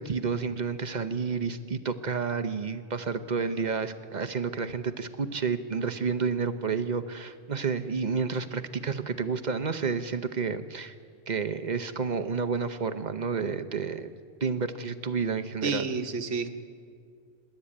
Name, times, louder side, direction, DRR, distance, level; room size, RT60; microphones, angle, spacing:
voice 1, 0.0-10.9 11.3-14.1 14.4-15.9, right 5 dB, 40° right, 9 dB, 0.9 m, -30 dB
voice 2, 15.6-16.5, right 5 dB, 75° right, 7 dB, 1.4 m, -29 dB
26.0 x 12.0 x 8.7 m, 2.2 s
omnidirectional pair, 1.2 m